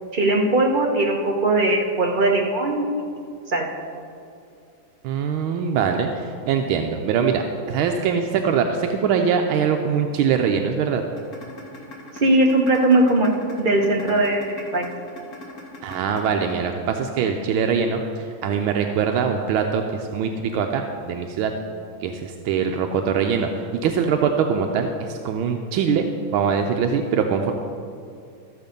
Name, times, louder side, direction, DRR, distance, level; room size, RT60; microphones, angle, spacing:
voice 1, 0.1-2.8 3.5-3.7 12.2-13.3 13.6-14.9, right 2 dB, 35° right, 0 dB, 0.8 m, -19 dB
voice 2, 5.0-11.0 15.8-21.5 22.0-23.5 23.8-26.0 26.3-27.5, right 6 dB, 85° right, 4 dB, 1.4 m, -23 dB
sound 1, 11.2-17.2, left 2 dB, 45° left, 2.1 m, -40 dB
13.5 x 7.3 x 5.2 m, 2.4 s
omnidirectional pair, 2.2 m